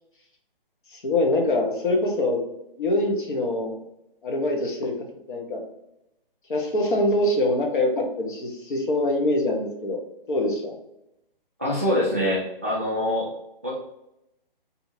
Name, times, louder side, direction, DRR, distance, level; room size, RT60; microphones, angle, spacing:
voice 1, 0.9-2.4 2.8-3.8 4.2-5.0 5.3-5.6 6.5-10.0 10.3-10.7, left 1 dB, 60° left, 1 dB, 0.9 m, -24 dB
voice 2, 11.6-13.3 13.6-13.7, left 1 dB, 15° right, -7 dB, 0.3 m, -24 dB
2.7 x 2.7 x 4.3 m, 0.85 s
hypercardioid pair, 150°, 29 cm